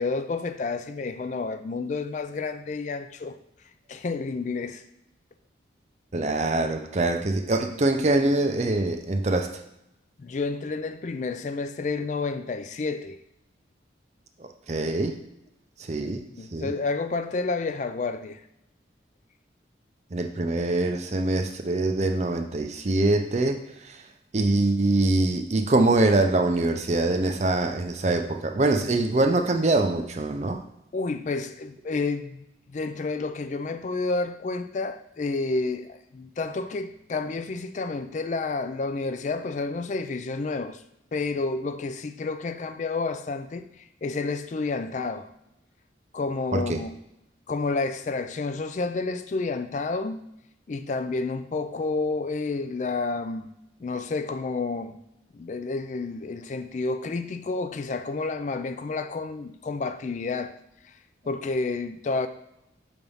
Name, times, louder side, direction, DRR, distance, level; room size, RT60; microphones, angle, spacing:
voice 1, 0.0-3.4 3.9-4.8 10.2-13.2 16.4-18.4 30.9-32.4 32.7-40.8 41.1-45.3 46.1-46.9 47.5-50.2 50.7-53.5 53.8-55.0 55.3-60.5 61.2-62.3, left 3 dB, 40° left, 0.3 m, -30 dB
voice 2, 6.1-9.6 14.7-15.2 15.8-16.2 16.5-16.7 20.1-23.6 23.8-24.0 24.3-30.6 46.5-46.8, right 2 dB, 35° right, 0.5 m, -24 dB
5.8 x 3.5 x 5.3 m
head